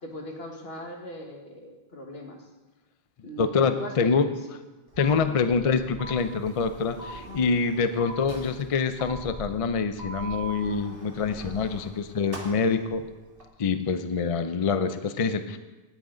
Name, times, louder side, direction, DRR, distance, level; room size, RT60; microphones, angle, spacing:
voice 1, 0.0-2.4 3.2-4.2 5.1-5.3 7.3-7.4, left 1 dB, 75° left, 2 dB, 1.8 m, -40 dB
voice 2, 3.4-4.3 5.0-13.1 13.6-15.6, left 5 dB, 45° left, 10 dB, 0.5 m, -25 dB
Sliding door, 4.9-13.5, right 1 dB, 65° right, 1.8 m, -45 dB
sound 1, 5.0-5.1 6.0-6.1 7.0-7.1 8.0-8.1 9.0-9.1 10.0-10.5, right 3 dB, 45° right, 2.6 m, -38 dB
18.0 x 6.4 x 3.8 m, 1.2 s
omnidirectional pair, 1.0 m